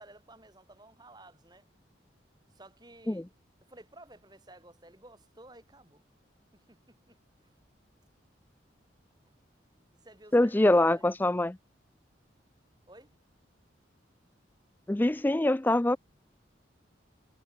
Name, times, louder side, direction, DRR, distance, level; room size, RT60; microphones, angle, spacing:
voice 1, 0.0-1.7 2.5-3.3 3.6-6.0 6.5-7.5 9.3-9.4 10.0-11.0 12.9-13.1, right 1 dB, 20° right, 3.9 m, -54 dB
voice 2, 10.3-11.6 14.9-16.0, left 1 dB, 10° left, 0.3 m, -24 dB
head